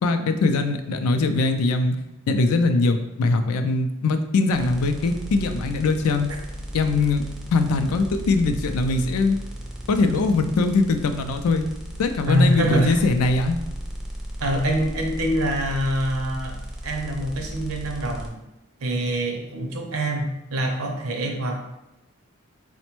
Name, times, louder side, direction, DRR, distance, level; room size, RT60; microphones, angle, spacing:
voice 1, 0.0-2.0 2.3-6.3 6.7-7.2 7.5-9.4 9.9-11.7 12.0-13.6, left 3 dB, 80° left, 8 dB, 0.4 m, -21 dB
sound 1, 4.5-18.3, equal, ahead, 0.4 m, -35 dB
voice 2, 12.3-13.0 14.4-16.6 16.8-18.4 18.8-21.6, right 1 dB, 75° right, 2 dB, 0.6 m, -25 dB
4.1 x 2.1 x 3.0 m, 0.91 s
head